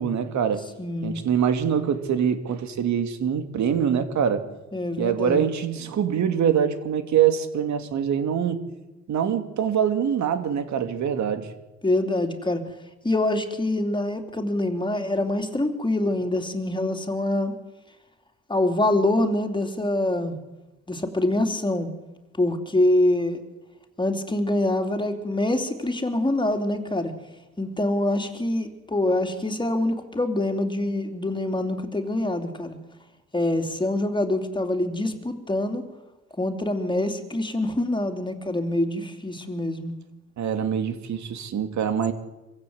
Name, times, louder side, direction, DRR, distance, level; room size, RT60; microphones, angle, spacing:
voice 1, 0.0-0.6 1.0-4.5 5.0-8.6 9.1-11.5 40.4-42.1, right 8 dB, 70° right, 8 dB, 2.4 m, -24 dB
voice 2, 0.8-1.2 4.7-5.5 11.8-12.6 13.0-17.5 18.5-20.4 20.9-21.9 22.4-23.4 24.0-27.1 27.6-32.8 33.3-35.8 36.4-39.9, left 1 dB, 15° left, 5 dB, 3.2 m, -25 dB
25.5 x 15.5 x 8.1 m, 1.1 s
cardioid pair, 90°, 30 cm